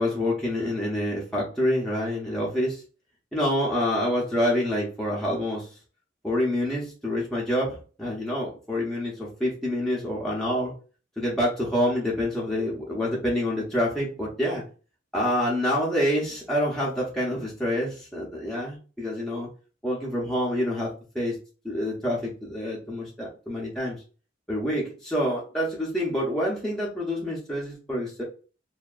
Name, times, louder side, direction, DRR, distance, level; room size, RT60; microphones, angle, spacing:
voice 1, 0.0-2.8 3.3-5.7 6.2-10.7 11.2-14.6 15.1-19.5 19.8-21.4 21.6-24.0 24.5-28.2, left 1 dB, 5° left, -5 dB, 0.6 m, -27 dB
2.7 x 2.3 x 2.3 m, 0.36 s
head